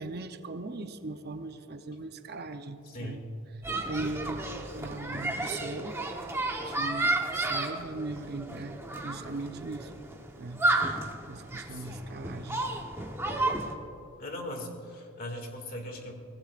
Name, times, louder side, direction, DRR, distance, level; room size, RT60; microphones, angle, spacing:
voice 1, 0.0-3.2 3.8-6.0 6.6-10.0 10.4-10.6 11.3-12.7, right 3 dB, 50° right, 8 dB, 0.7 m, -39 dB
voice 2, 2.8-3.3 11.7-12.1 14.2-16.3, left 1 dB, 45° left, 3 dB, 2.2 m, -40 dB
sound 1, 3.6-13.7, right 2 dB, 10° right, 1.1 m, -32 dB
24.0 x 17.5 x 2.5 m, 2.7 s
head